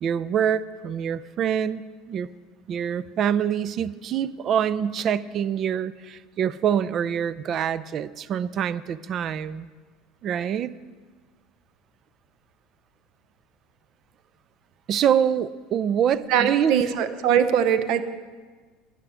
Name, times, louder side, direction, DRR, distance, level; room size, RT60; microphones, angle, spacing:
voice 1, 0.0-2.3 2.7-9.7 10.2-10.7 14.9-16.8, right 8 dB, 45° right, 18 dB, 0.4 m, -25 dB
voice 2, 16.3-18.0, right 8 dB, 60° right, 11 dB, 0.8 m, -21 dB
11.0 x 8.4 x 6.2 m, 1.4 s
supercardioid pair, 110°, 0 cm